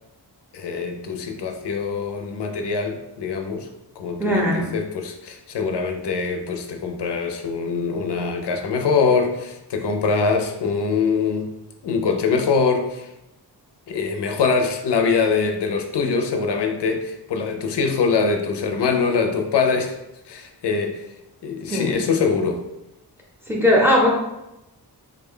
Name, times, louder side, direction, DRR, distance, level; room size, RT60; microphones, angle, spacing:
voice 1, 0.5-3.7 4.0-11.5 11.8-13.1 13.9-20.0 20.3-21.0 21.4-22.6, left 5 dB, 75° left, 4 dB, 0.5 m, -23 dB
voice 2, 4.2-4.7 21.7-22.0 23.5-24.1, equal, 5° right, -2 dB, 0.6 m, -18 dB
3.5 x 2.2 x 3.7 m, 0.90 s
wide cardioid pair, 165°, 41 cm